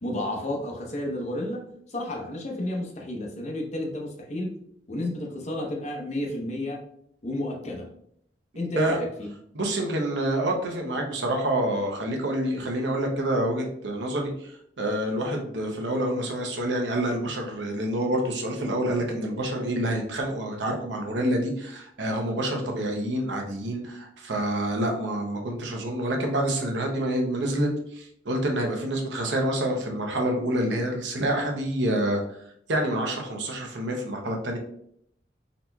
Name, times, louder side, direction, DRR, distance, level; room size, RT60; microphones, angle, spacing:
voice 1, 0.0-4.5 4.9-6.8 7.2-7.9 8.6-9.1, left 1 dB, 40° left, 0 dB, 0.7 m, -31 dB
voice 2, 9.5-32.2 32.7-34.6, right 1 dB, 80° right, 2 dB, 0.8 m, -27 dB
4.0 x 2.9 x 2.2 m, 0.69 s
head